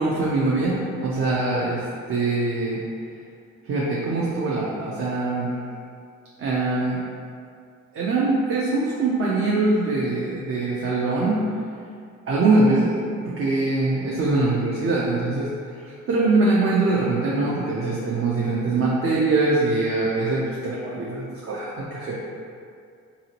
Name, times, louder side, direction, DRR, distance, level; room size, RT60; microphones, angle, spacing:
voice 1, 0.0-2.8 3.7-5.5 6.4-7.0 7.9-11.4 12.3-12.9 13.2-22.3, right 2 dB, 45° right, -6 dB, 0.5 m, -23 dB
2.9 x 2.7 x 2.8 m, 2.3 s
cardioid pair, 90°, 30 cm